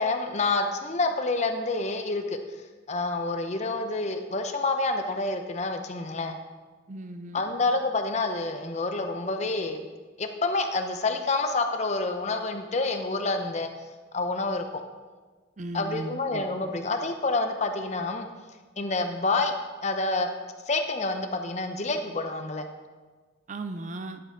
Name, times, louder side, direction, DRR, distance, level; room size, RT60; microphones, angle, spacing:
voice 1, 0.0-2.4 2.9-6.4 7.3-9.9 10.2-13.7 14.1-14.8 15.7-18.3 18.8-19.5 19.8-20.3 20.7-22.7, left 3 dB, 35° left, 6 dB, 0.7 m, -28 dB
voice 2, 6.9-7.6 15.6-16.7 23.5-24.2, right 2 dB, 40° right, 8 dB, 0.5 m, -37 dB
11.0 x 6.7 x 3.8 m, 1.3 s
head